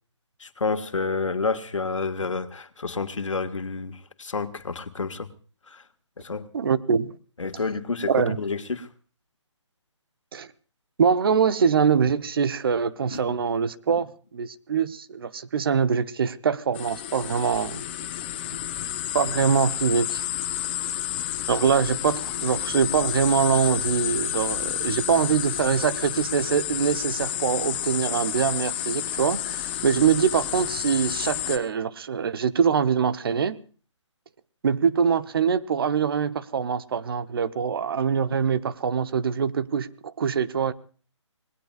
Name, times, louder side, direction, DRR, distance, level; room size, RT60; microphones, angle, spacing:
voice 1, 0.4-5.3 5.7-5.8 6.2-6.5 7.4-8.9 13.1-13.4 13.9-14.0, left 4 dB, 80° left, 1.8 m, -29 dB
voice 2, 6.5-7.1 8.1-8.4 10.3-10.5 11.0-17.8 19.1-20.2 21.5-33.6 34.6-40.7, right 6 dB, 50° right, 1.0 m, -24 dB
sound 1, 16.7-31.6, left 12 dB, 20° left, 0.8 m, -30 dB
27.0 x 19.5 x 2.5 m
hypercardioid pair, 155°, 16 cm